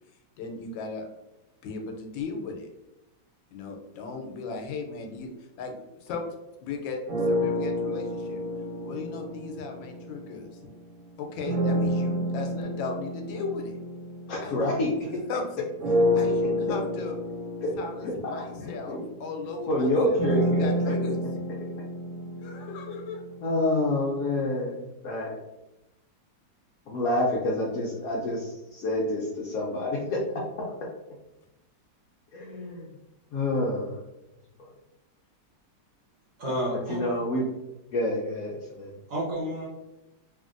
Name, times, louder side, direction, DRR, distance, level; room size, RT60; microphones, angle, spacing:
voice 1, 0.4-1.1 1.6-2.7 3.5-6.3 6.6-8.4 8.8-10.6 11.2-13.8 14.4-14.6 15.3-17.2 17.7-20.2 20.6-21.2 22.4-23.2, left 4 dB, 90° left, 3 dB, 1.3 m, -36 dB
sound 1, 7.1-10.6 11.4-15.2 15.8-23.8, equal, 90° right, 1.6 m, -29 dB
voice 2, 14.3-15.2 17.6-17.7 18.0-19.0 19.7-20.9 23.4-25.4 26.9-30.2 32.3-32.9 33.3-34.0 34.6-34.7 36.7-37.4 37.9-38.9, left 1 dB, 70° left, -3 dB, 0.9 m, -28 dB
voice 3, 36.4-37.0 39.1-39.7, right 1 dB, 55° right, -5 dB, 1.0 m, -30 dB
3.1 x 2.6 x 2.4 m, 0.94 s
omnidirectional pair, 2.0 m